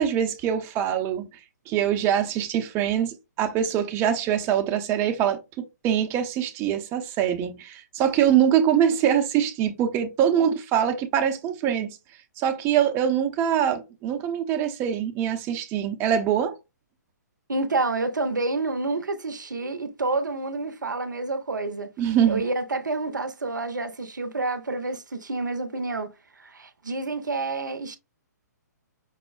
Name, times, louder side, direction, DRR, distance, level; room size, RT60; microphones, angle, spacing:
voice 1, 0.0-1.4 1.7-12.0 12.4-16.6 22.0-22.4, right 9 dB, 25° right, 0.6 m, -24 dB
voice 2, 17.5-21.9 22.3-28.0, right 3 dB, 85° right, 0.6 m, -29 dB
5.4 x 2.0 x 2.3 m
figure-of-eight pair, 130°, 10 cm